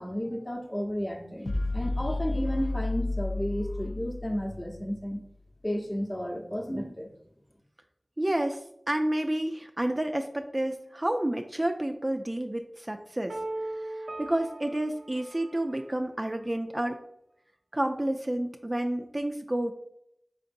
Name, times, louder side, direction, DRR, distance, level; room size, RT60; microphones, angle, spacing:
voice 1, 0.0-5.2 5.6-7.1, equal, 25° left, 2 dB, 0.7 m, -32 dB
sound 1, 1.5-4.9, left 2 dB, 80° left, 0.4 m, -32 dB
voice 2, 8.2-13.4 13.8-17.0 17.7-19.7, right 1 dB, 30° right, 5 dB, 0.3 m, -30 dB
sound 2, 13.3-16.2, right 2 dB, 85° right, 0.6 m, -39 dB
4.5 x 3.7 x 2.6 m, 0.75 s
wide cardioid pair, 45°, 0 cm